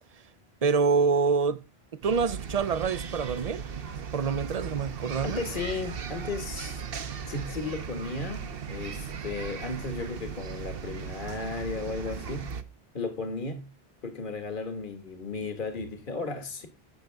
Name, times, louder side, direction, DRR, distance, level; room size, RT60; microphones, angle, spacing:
voice 1, 0.6-1.6 1.9-3.6 4.1-5.4, right 5 dB, 45° right, 0.6 m, -26 dB
sound 1, 2.0-12.6, right 6 dB, 65° right, 1.1 m, -37 dB
voice 2, 5.2-6.8 7.3-12.6 12.9-13.7 14.0-16.7, left 3 dB, 55° left, 1.8 m, -35 dB
17.0 x 6.6 x 3.4 m
omnidirectional pair, 1.0 m